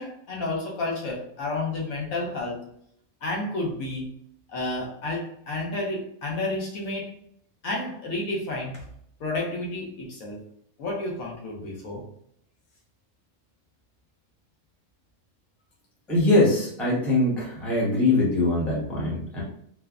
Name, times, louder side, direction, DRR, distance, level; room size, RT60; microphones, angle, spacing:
voice 1, 0.0-2.6 3.2-4.1 4.5-7.1 7.6-8.9 9.2-10.4 10.8-12.0, left 2 dB, 75° left, -1 dB, 1.1 m, -31 dB
voice 2, 16.1-19.4, left 2 dB, ahead, -6 dB, 0.5 m, -22 dB
3.3 x 2.1 x 2.3 m, 0.69 s
omnidirectional pair, 1.5 m